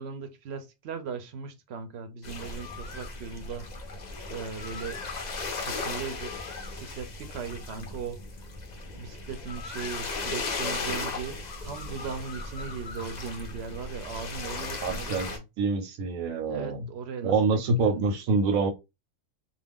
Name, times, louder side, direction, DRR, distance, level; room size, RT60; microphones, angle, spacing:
voice 1, 0.0-3.7 4.3-5.0 5.6-6.3 6.7-8.2 8.9-15.4 16.4-18.0, right 6 dB, 65° right, 0.7 m, -38 dB
Tropical Island, 2.2-15.4, left 3 dB, 60° left, 0.4 m, -36 dB
voice 2, 14.8-15.3 15.6-16.8 17.2-18.7, right 3 dB, 90° right, 1.1 m, -26 dB
2.4 x 2.1 x 3.4 m
omnidirectional pair, 1.4 m